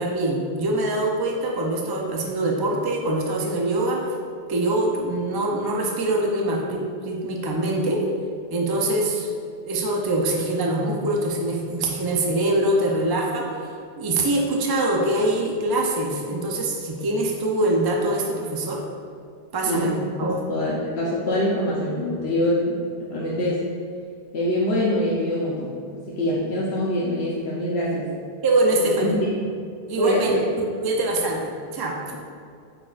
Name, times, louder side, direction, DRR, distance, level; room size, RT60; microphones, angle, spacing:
voice 1, 0.0-4.0 4.5-8.1 8.5-9.3 9.6-13.5 14.0-18.8 19.5-20.4 28.4-29.2 29.9-30.3 30.6-32.1, right 2 dB, 25° right, -1 dB, 0.6 m, -24 dB
voice 2, 20.2-22.8 23.1-23.6 24.3-25.7 26.1-28.0 29.0-29.3 30.0-30.4, left 1 dB, 80° left, -6 dB, 1.1 m, -24 dB
8.7 x 4.5 x 2.5 m, 2.4 s
omnidirectional pair, 1.0 m